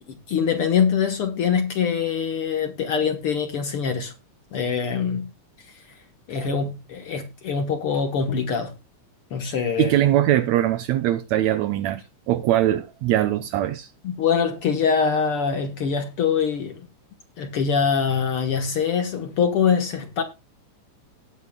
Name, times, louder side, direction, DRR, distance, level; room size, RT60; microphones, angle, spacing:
voice 1, 0.1-4.1 4.5-5.3 6.3-8.8 9.3-9.9 14.0-16.9 17.4-20.2, left 6 dB, 55° left, 1.7 m, -24 dB
voice 2, 9.8-13.9, right 13 dB, 75° right, 1.7 m, -22 dB
19.0 x 8.6 x 2.2 m
omnidirectional pair, 3.6 m